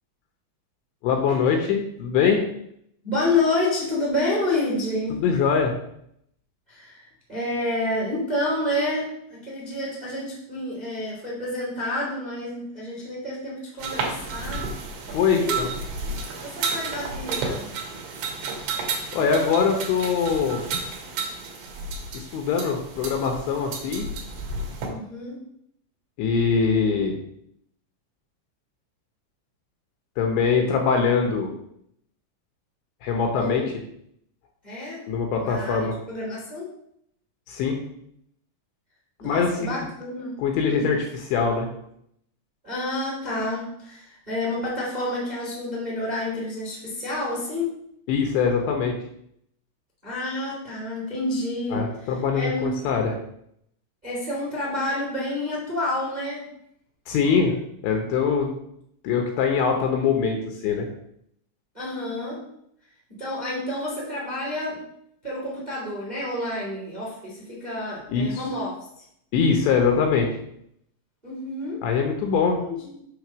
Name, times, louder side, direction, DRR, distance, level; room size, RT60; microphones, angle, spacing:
voice 1, 1.0-2.4 5.1-5.7 15.1-15.7 19.1-20.6 22.1-24.1 26.2-27.1 30.2-31.5 33.0-33.6 35.1-36.0 37.5-37.8 39.2-39.7 40.4-41.7 48.1-48.9 51.7-53.2 57.1-57.5 57.8-58.5 59.0-60.4 60.6-60.9 68.1-68.4 69.3-70.3 71.8-72.6, left 6 dB, 75° left, 2 dB, 2.9 m, -22 dB
voice 2, 3.0-5.2 6.7-14.7 15.3-15.6 16.4-17.7 24.9-25.4 33.3-33.6 34.6-35.1 35.4-36.7 39.2-40.4 40.7-40.9 42.6-47.8 50.0-52.7 54.0-56.5 61.7-62.4 63.2-64.8 65.2-69.0 71.2-71.9 72.6-73.0, left 2 dB, 15° right, -5 dB, 1.7 m, -29 dB
sound 1, 13.8-24.9, right 4 dB, 70° right, 3.5 m, -32 dB
8.2 x 3.7 x 6.1 m, 0.72 s
omnidirectional pair, 5.7 m